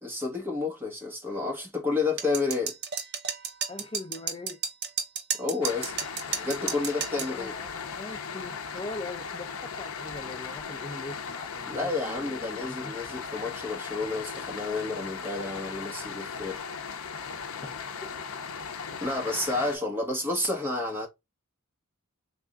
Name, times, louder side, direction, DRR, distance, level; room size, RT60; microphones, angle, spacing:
voice 1, 0.0-2.7 5.4-5.9 6.4-7.5 11.7-16.6 19.0-21.1, left 3 dB, 10° right, 1.2 m, -30 dB
sound 1, 2.2-7.3, right 7 dB, 50° right, 0.7 m, -32 dB
voice 2, 3.7-4.6 7.1-12.9 17.6-17.7 18.0-18.1, left 2 dB, 25° left, 0.4 m, -41 dB
sound 2, 5.6-19.8, left 6 dB, 75° left, 0.6 m, -37 dB
3.5 x 3.4 x 2.4 m
head